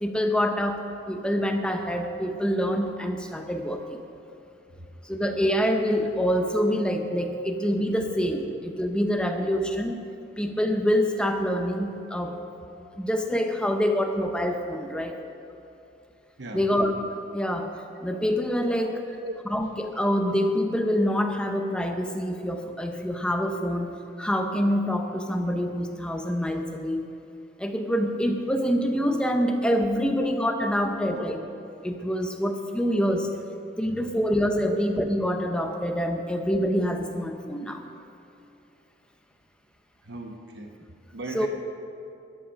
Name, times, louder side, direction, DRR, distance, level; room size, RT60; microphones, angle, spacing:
voice 1, 0.0-4.0 5.0-10.0 10.4-12.4 13.0-15.2 16.5-16.9 17.3-17.7 18.0-19.1 19.4-27.1 27.6-31.4 31.8-33.3 33.8-37.8 41.3-41.5, equal, 5° left, 4 dB, 0.7 m, -26 dB
voice 2, 40.0-40.7 41.1-41.5, right 2 dB, 60° right, 2 dB, 1.0 m, -37 dB
13.0 x 11.5 x 5.6 m, 2.8 s
head